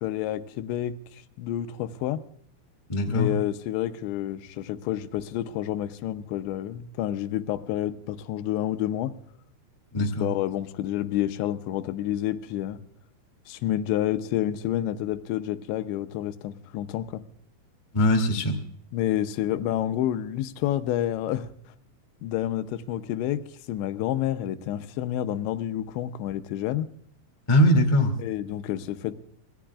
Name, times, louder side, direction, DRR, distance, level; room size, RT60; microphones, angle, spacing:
voice 1, 0.0-2.2 3.1-9.2 10.0-12.8 13.5-17.2 18.9-21.5 22.2-23.4 23.7-26.9 28.2-29.2, left 12 dB, 85° left, 10 dB, 3.0 m, -29 dB
voice 2, 2.9-3.3 9.9-10.3 17.9-18.6 27.5-28.1, left 1 dB, 25° left, 2 dB, 0.6 m, -21 dB
25.5 x 18.0 x 2.4 m, 0.64 s
omnidirectional pair, 5.2 m